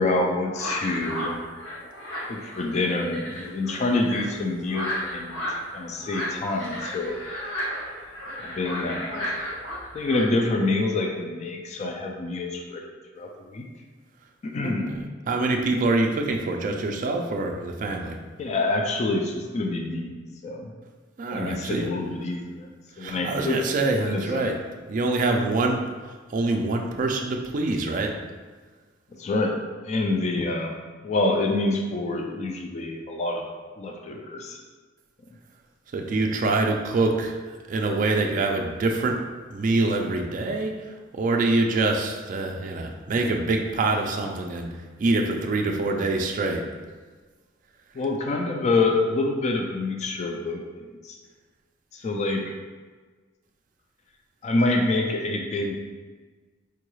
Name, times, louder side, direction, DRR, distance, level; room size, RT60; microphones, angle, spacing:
voice 1, 0.0-1.4 2.3-7.2 8.4-9.3 9.9-12.8 13.2-13.7 14.4-15.0 18.4-20.7 21.3-22.7 23.0-24.5 29.2-30.7 31.0-33.4 33.8-34.6 47.9-51.2 51.9-52.5 54.4-55.8, left 2 dB, 35° left, 2 dB, 0.3 m, -27 dB
sound 1, 0.5-10.2, equal, 80° left, 0.9 m, -34 dB
voice 2, 14.6-18.2 21.2-21.9 22.9-24.6 24.9-28.1 35.9-39.2 39.5-44.7 45.0-46.6, right 2 dB, 40° right, 2 dB, 0.3 m, -25 dB
4.5 x 2.3 x 3.1 m, 1.4 s
head